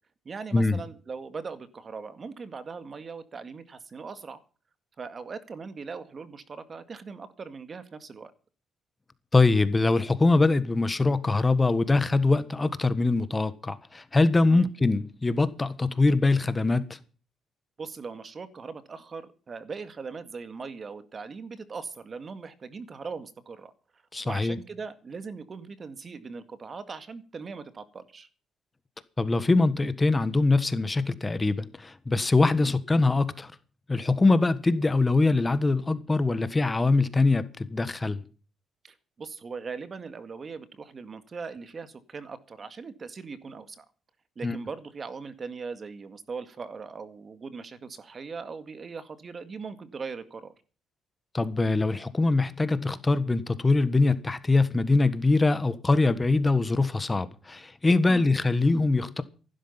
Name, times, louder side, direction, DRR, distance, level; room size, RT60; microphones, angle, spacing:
voice 1, 0.3-4.4 5.0-8.3 14.5-14.7 17.8-23.7 24.2-28.3 32.5-32.8 38.8-43.9 44.4-50.5 58.1-58.3, right 5 dB, 40° right, 1.9 m, -40 dB
voice 2, 9.3-17.0 24.1-24.6 29.2-33.5 33.9-38.2 44.4-44.6 51.3-59.2, left 3 dB, 20° left, 1.4 m, -23 dB
15.0 x 12.5 x 5.7 m
cardioid pair, 90°, 0 cm